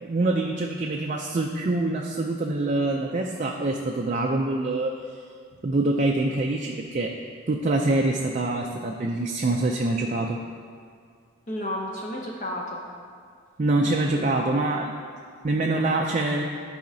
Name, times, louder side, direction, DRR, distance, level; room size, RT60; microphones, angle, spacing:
voice 1, 0.0-4.9 5.6-7.2 7.5-10.4 13.6-14.9 15.4-16.5, right 2 dB, 35° right, 1 dB, 0.4 m, -25 dB
voice 2, 11.5-12.8 14.1-14.6 15.6-15.9, left 1 dB, 35° left, -2 dB, 0.6 m, -33 dB
13.0 x 4.9 x 2.7 m, 2.1 s
head